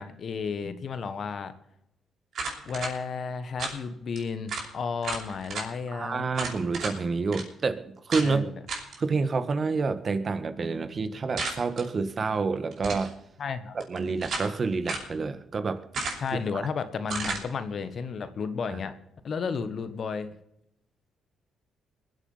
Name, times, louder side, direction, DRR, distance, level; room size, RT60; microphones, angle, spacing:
voice 1, 0.0-1.5 2.6-6.2 8.2-8.6 13.4-13.8 16.2-18.9 19.2-20.3, left 5 dB, 50° left, 11 dB, 1.5 m, -33 dB
sound 1, 2.3-2.9 3.6-3.8 4.2-4.3 4.5-4.7 5.0-5.7 6.3-7.0 7.3-7.4 8.1-8.3 8.7-9.0 11.4-11.8 12.7-13.1 13.8-14.5 14.9-15.1 15.9-16.4 17.1-17.4, right 3 dB, 60° right, 6.0 m, -33 dB
voice 2, 5.9-8.5 9.0-13.1 13.7-15.8 16.3-16.7 18.7-18.8, right 4 dB, 40° right, 10 dB, 1.7 m, -28 dB
22.5 x 8.2 x 5.7 m, 0.78 s
cardioid pair, 90°, 0 cm